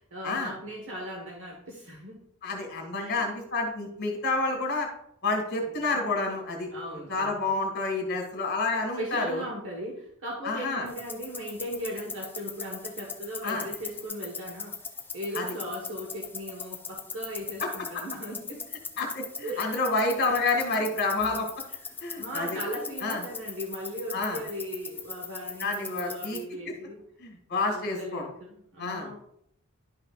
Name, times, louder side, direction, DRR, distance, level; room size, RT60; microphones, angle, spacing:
voice 1, 0.0-2.2 2.9-3.2 5.7-5.9 6.7-7.4 9.0-14.8 15.1-18.6 19.4-19.9 22.2-27.0 27.7-29.2, equal, 60° right, -1 dB, 1.4 m, -38 dB
voice 2, 2.4-4.9 5.2-6.7 7.1-9.4 10.4-10.9 13.4-13.7 15.4-15.5 17.6-17.7 19.0-21.5 22.0-22.6 23.0-23.2 24.1-24.4 25.6-26.4 26.7-26.8 27.2-28.3 28.8-29.1, left 3 dB, 50° left, 2 dB, 1.9 m, -29 dB
sound 1, 10.9-26.4, left 5 dB, 10° left, 0.5 m, -40 dB
11.0 x 5.7 x 2.4 m, 0.70 s
head